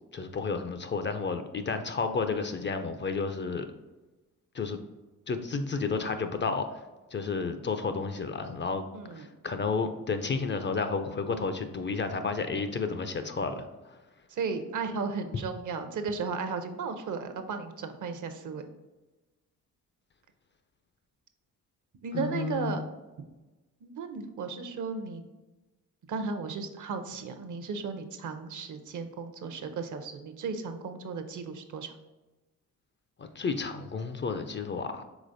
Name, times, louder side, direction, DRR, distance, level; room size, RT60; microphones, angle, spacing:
voice 1, 0.1-3.7 4.5-4.8 5.3-6.8 7.1-8.8 9.1-14.0 22.1-22.7 33.2-35.0, left 4 dB, 30° left, 8 dB, 0.4 m, -31 dB
voice 2, 8.9-9.3 14.3-18.6 22.0-22.8 23.8-25.2 26.1-31.9, right 4 dB, 55° right, 8 dB, 0.6 m, -35 dB
4.9 x 3.7 x 2.6 m, 1.1 s
cardioid pair, 70°, 36 cm